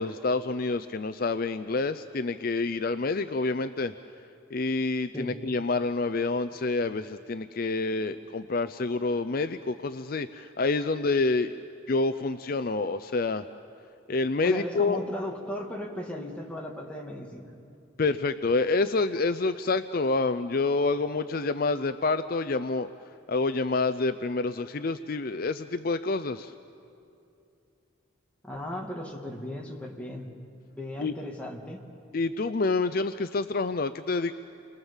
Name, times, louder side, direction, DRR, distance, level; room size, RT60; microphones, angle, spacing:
voice 1, 0.0-3.9 4.5-11.5 11.9-13.4 14.1-15.0 18.0-22.9 23.3-26.5 31.0-31.1 32.1-34.3, left 3 dB, 45° left, 10 dB, 0.5 m, -27 dB
voice 2, 14.4-17.5 28.4-30.3 30.7-31.8, left 1 dB, 5° left, -1 dB, 2.3 m, -36 dB
30.0 x 23.0 x 7.3 m, 2.7 s
head